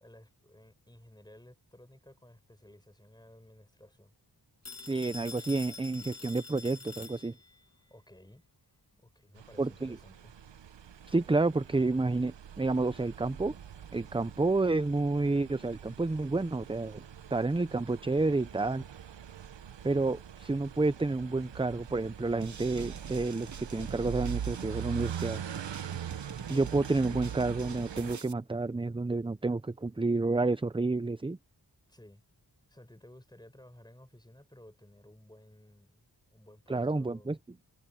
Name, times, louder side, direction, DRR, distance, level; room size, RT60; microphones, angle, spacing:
voice 1, 0.0-4.1 7.9-8.4 8.9-10.3 31.9-32.2 32.7-37.4, left 1 dB, 10° left, 5.9 m, -56 dB
Telephone, 4.7-7.7, left 4 dB, 35° left, 1.3 m, -46 dB
voice 2, 4.8-7.3 9.6-10.0 11.1-13.5 13.9-17.0 17.3-18.8 19.8-25.4 26.5-31.4 36.7-37.4, right 3 dB, 15° right, 0.5 m, -30 dB
sound 1, 9.4-28.2, right 9 dB, 80° right, 0.9 m, -42 dB
sound 2, 22.4-28.3, right 6 dB, 45° right, 0.8 m, -46 dB
wide cardioid pair, 80°, 43 cm